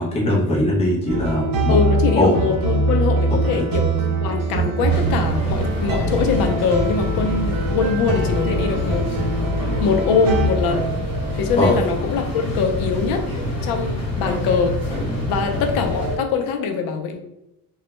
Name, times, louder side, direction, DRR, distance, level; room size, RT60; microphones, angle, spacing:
voice 1, 0.0-1.8 2.2-2.3 11.6-11.8, left 1 dB, 15° left, -3 dB, 0.5 m, -20 dB
sound 1, 1.1-10.5, right 2 dB, 65° right, 0.7 m, -22 dB
voice 2, 1.7-3.9 4.2-9.1 9.8-10.9 11.3-13.3 13.6-14.8 15.3-17.2, left 5 dB, 70° left, 4 dB, 0.5 m, -22 dB
sound 2, 4.8-16.2, left 1 dB, 45° left, 1.1 m, -27 dB
sound 3, 6.0-8.6 8.9-16.2, right 3 dB, 25° right, 0.9 m, -38 dB
2.2 x 2.0 x 2.9 m, 0.88 s
cardioid pair, 165°, 36 cm